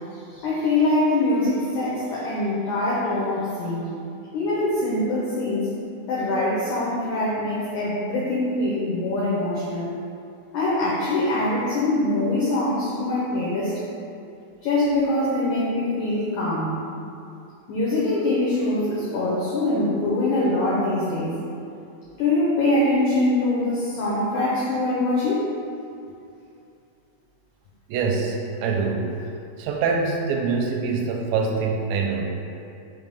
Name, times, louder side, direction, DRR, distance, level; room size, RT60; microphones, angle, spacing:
voice 1, 0.3-3.9 4.3-5.7 6.1-9.9 10.5-13.7 14.6-16.8 17.7-21.3 22.2-25.5, left 2 dB, 70° left, -7 dB, 2.0 m, -23 dB
voice 2, 27.9-29.1 29.6-32.2, right 4 dB, 80° right, 1 dB, 2.2 m, -24 dB
5.4 x 3.8 x 5.3 m, 2.5 s
omnidirectional pair, 4.3 m